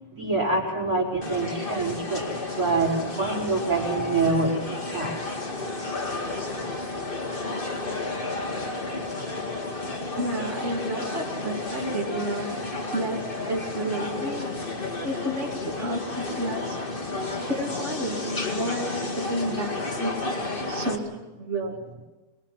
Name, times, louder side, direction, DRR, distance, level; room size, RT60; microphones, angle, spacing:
voice 1, 0.2-5.1, right 3 dB, 90° right, -3 dB, 5.0 m, -26 dB
sound 1, 1.2-21.0, left 2 dB, 35° left, 2.3 m, -32 dB
voice 2, 10.2-12.5 12.9-13.2 13.5-14.4 15.0-16.8 17.4-20.2 20.7-21.8, right 1 dB, 50° right, -2 dB, 3.0 m, -31 dB
26.5 x 20.5 x 5.8 m, 1.2 s
omnidirectional pair, 1.5 m